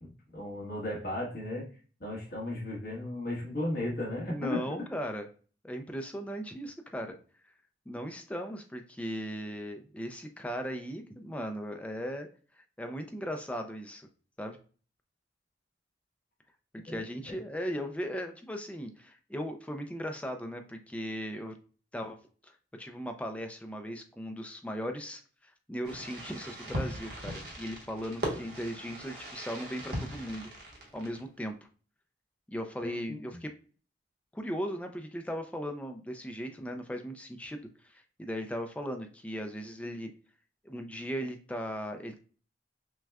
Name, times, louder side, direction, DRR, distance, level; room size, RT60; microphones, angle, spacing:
voice 1, 0.0-1.7 2.0-4.6 16.9-17.0 32.8-33.4, left 1 dB, 55° left, -4 dB, 1.4 m, -35 dB
voice 2, 4.3-5.3 5.6-7.2 7.9-12.3 12.6-14.1 14.4-14.6 16.8-21.6 21.9-22.2 22.4-22.5 22.8-30.5 30.9-31.5 32.5-33.5 34.3-40.1 40.6-42.2, equal, 5° left, 5 dB, 0.4 m, -37 dB
Fireworks, 25.8-31.4, equal, 60° right, 1.2 m, -39 dB
6.0 x 2.2 x 2.3 m, 0.40 s
head